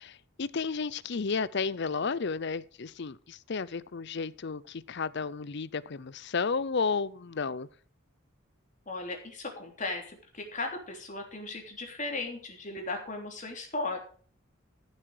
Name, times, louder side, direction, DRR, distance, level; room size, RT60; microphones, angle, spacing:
voice 1, 0.0-7.7, left 5 dB, 60° left, 0.6 m, -32 dB
voice 2, 8.9-14.0, left 2 dB, 40° left, 3.3 m, -36 dB
14.0 x 7.5 x 4.8 m
head